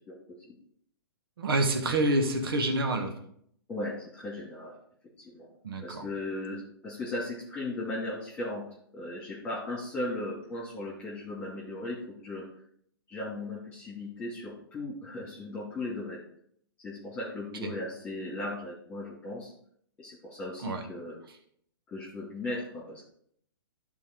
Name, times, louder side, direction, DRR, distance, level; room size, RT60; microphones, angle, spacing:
voice 1, 1.4-3.1 5.6-6.1 17.6-17.7 20.6-20.8, right 2 dB, 70° right, 4 dB, 1.6 m, -27 dB
voice 2, 3.7-4.7 5.2-5.5 5.8-8.6 8.9-12.5 13.1-16.2 16.8-19.5 20.0-21.2 21.9-23.0, left 2 dB, 15° left, -6 dB, 2.7 m, -37 dB
12.0 x 4.5 x 4.6 m, 0.65 s
hypercardioid pair, 125°, 13 cm